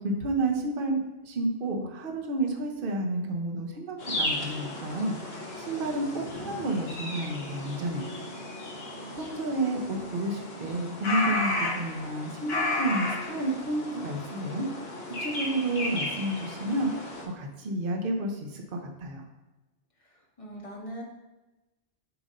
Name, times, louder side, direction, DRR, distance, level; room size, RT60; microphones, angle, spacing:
voice 1, 0.0-8.2 9.1-14.7 15.1-19.2, right 1 dB, 50° right, 2 dB, 0.9 m, -31 dB
sound 1, 4.0-17.2, left 2 dB, 60° left, 1.2 m, -34 dB
voice 2, 20.0-21.0, right 1 dB, 30° left, -3 dB, 1.1 m, -42 dB
7.1 x 2.7 x 5.2 m, 1.1 s
omnidirectional pair, 1.2 m